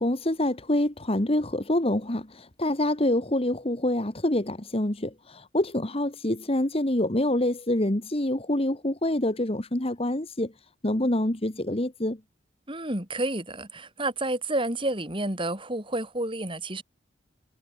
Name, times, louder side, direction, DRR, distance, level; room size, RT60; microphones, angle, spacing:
voice 1, 0.0-10.5 10.8-12.2, left 1 dB, 30° left, 1.7 m, -26 dB
voice 2, 12.7-16.8, right 1 dB, 25° right, 7.2 m, -30 dB
head